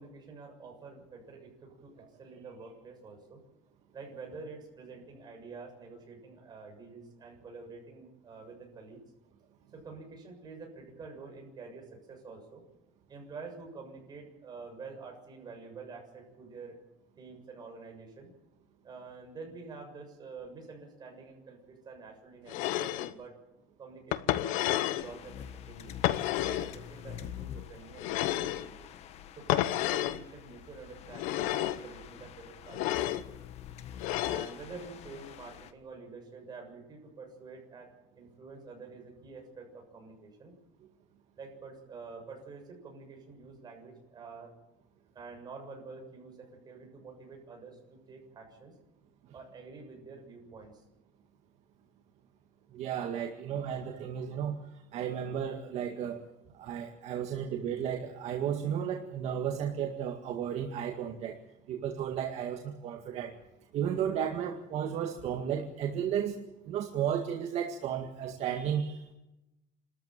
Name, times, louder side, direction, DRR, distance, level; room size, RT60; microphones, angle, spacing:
voice 1, 0.0-3.4 3.9-9.0 9.7-12.6 13.1-16.8 17.2-18.3 18.8-23.3 23.8-26.0 26.4-28.9 29.4-33.3 34.2-37.9 38.2-40.5 41.4-44.6 45.1-48.7 49.3-50.8, right 4 dB, 30° right, 2 dB, 7.1 m, -48 dB
sound 1, 22.5-23.1 24.1-25.1 26.0-26.7 28.0-28.7 29.5-30.2 31.1-31.8 32.7-33.2 34.0-34.5, left 15 dB, 80° left, 1.0 m, -30 dB
sound 2, 25.0-35.7, left 10 dB, 55° left, 1.5 m, -47 dB
voice 2, 52.7-54.6 54.9-56.2 56.5-61.4 61.7-63.3 63.7-66.4 66.7-69.1, right 8 dB, 55° right, 3 dB, 2.0 m, -33 dB
28.5 x 13.5 x 8.9 m, 0.95 s
cardioid pair, 145°, 13 cm